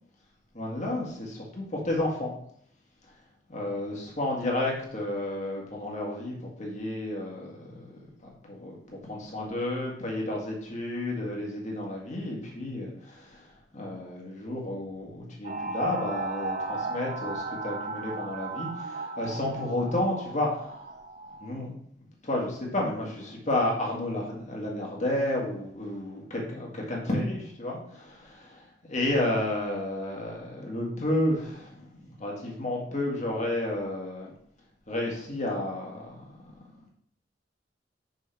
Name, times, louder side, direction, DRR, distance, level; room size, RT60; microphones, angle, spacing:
voice 1, 0.5-2.3 3.5-20.9 21.4-21.8 22.2-34.3 34.9-36.3, left 1 dB, 40° left, -2 dB, 1.8 m, -31 dB
sound 1, 15.4-21.6, right 3 dB, 40° right, 0.4 m, -35 dB
6.5 x 6.2 x 3.4 m, 0.67 s
head